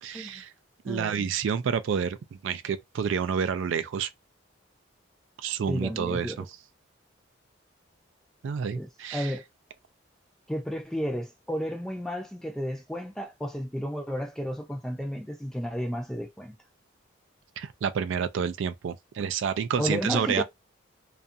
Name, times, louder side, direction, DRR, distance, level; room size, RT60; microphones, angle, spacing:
voice 1, 0.0-0.5 0.8-4.1 5.4-6.5 8.4-9.3 17.6-20.4, right 7 dB, 75° right, 0.3 m, -29 dB
voice 2, 0.9-1.4 5.7-6.4 8.7-9.4 10.5-16.6 19.8-20.4, equal, 5° left, 0.5 m, -32 dB
2.4 x 2.2 x 2.6 m
head